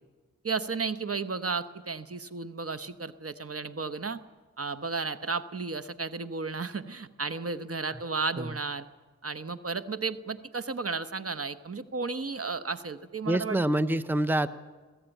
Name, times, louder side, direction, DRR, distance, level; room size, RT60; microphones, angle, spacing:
voice 1, 0.4-4.2 4.6-8.9 9.2-13.6, right 4 dB, 50° right, 12 dB, 1.0 m, -33 dB
voice 2, 13.3-14.5, right 1 dB, 5° right, 12 dB, 0.7 m, -26 dB
21.5 x 15.0 x 9.0 m, 1.3 s
cardioid pair, 50°, 30 cm